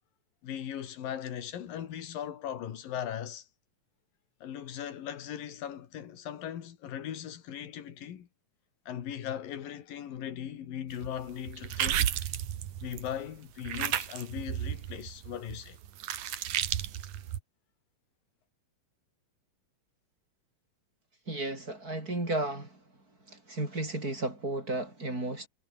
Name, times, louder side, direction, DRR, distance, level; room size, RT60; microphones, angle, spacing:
voice 1, 0.4-3.5 4.4-8.3 8.9-12.0 12.8-15.8, left 10 dB, 70° left, 3.8 m, -39 dB
sound 1, 11.0-13.2 13.7-17.4, right 11 dB, 60° right, 2.6 m, -33 dB
voice 2, 21.3-22.8 23.3-25.5, right 2 dB, 25° right, 6.8 m, -33 dB
omnidirectional pair, 4.2 m